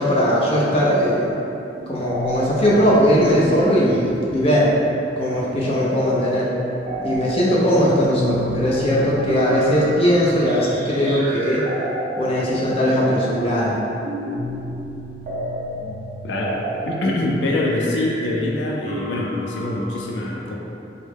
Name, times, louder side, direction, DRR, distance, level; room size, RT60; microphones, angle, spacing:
voice 1, 0.0-1.4 1.9-4.7 5.2-6.5 7.0-11.6 12.2-13.8, equal, 35° left, -6 dB, 0.6 m, -19 dB
sound 1, 0.9-1.5 1.7-20.0, equal, 40° right, 0.5 m, -31 dB
voice 2, 16.2-16.6 16.8-20.6, left 1 dB, 90° left, -2 dB, 0.4 m, -24 dB
3.5 x 2.2 x 3.3 m, 2.7 s
head